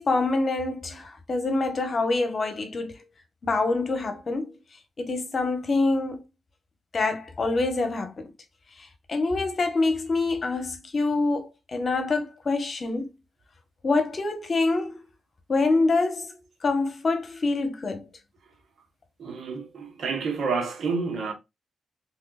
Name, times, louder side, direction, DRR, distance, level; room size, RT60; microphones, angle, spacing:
voice 1, 0.0-2.9 3.4-4.5 5.0-6.2 6.9-8.3 8.8-13.1 13.8-15.0 15.5-16.4 16.6-18.1, left 3 dB, 50° left, 1.1 m, -26 dB
voice 2, 19.2-21.3, right 4 dB, 70° right, 1.0 m, -29 dB
3.6 x 3.2 x 2.3 m
supercardioid pair, 50°, 0 cm